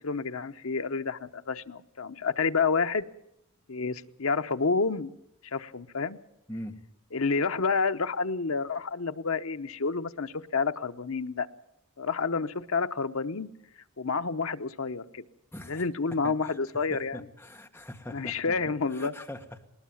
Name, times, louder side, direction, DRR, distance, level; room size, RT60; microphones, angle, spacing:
voice 1, 0.0-3.0 3.7-5.1 5.4-6.2 7.1-11.5 12.0-13.5 14.0-15.2 15.7-17.2 18.1-19.1, left 4 dB, 75° left, 9 dB, 0.9 m, -29 dB
voice 2, 15.5-15.8 16.1-16.6 16.9-18.5 18.9-19.7, left 1 dB, 10° left, 2 dB, 1.6 m, -42 dB
20.5 x 19.5 x 7.2 m, 0.80 s
head